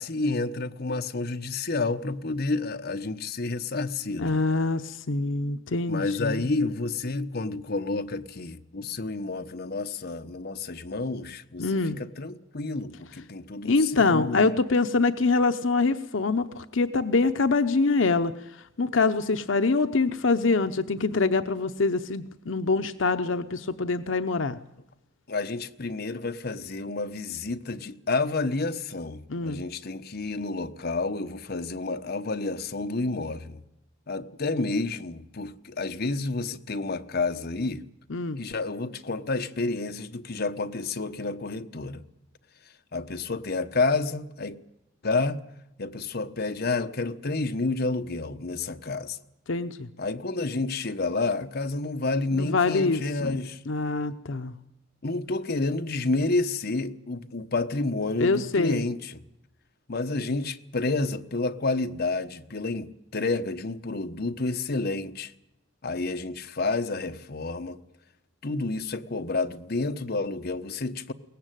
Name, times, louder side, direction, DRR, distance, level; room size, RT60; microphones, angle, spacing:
voice 1, 0.0-4.4 5.9-14.5 25.3-33.6 34.1-37.8 38.4-42.0 42.9-44.6 45.0-45.4 45.8-49.2 50.0-53.6 55.0-59.2 59.9-65.3 65.8-67.8 68.4-71.1, left 3 dB, 55° left, 1.1 m, -30 dB
voice 2, 4.2-6.5 11.6-12.0 13.6-18.3 18.8-24.6 29.3-29.6 38.1-38.4 49.5-49.9 52.3-53.4 53.7-54.5 58.2-58.8, left 3 dB, 75° left, 0.8 m, -25 dB
22.5 x 18.0 x 9.2 m
head